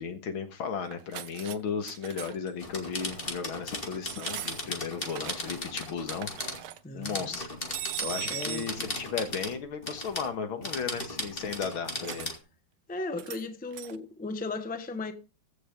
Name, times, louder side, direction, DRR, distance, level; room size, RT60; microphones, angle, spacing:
voice 1, 0.0-6.3 6.9-7.5 8.0-12.3, left 6 dB, 80° left, 2.4 m, -35 dB
sound 1, 0.8-1.6 1.8-2.5 3.0-3.2 4.0-5.6 5.8-6.8 7.7-8.7 12.0-12.3 13.2-13.4 13.7-14.0, right 12 dB, 90° right, 1.7 m, -39 dB
sound 2, 2.6-6.6 7.0-9.6 9.8-10.3 10.6-12.4, left 1 dB, 25° left, 2.5 m, -37 dB
voice 2, 6.8-7.4 7.9-8.0 8.3-8.7 12.9-15.1, left 3 dB, 5° left, 0.7 m, -36 dB
15.0 x 6.3 x 5.2 m
omnidirectional pair, 2.2 m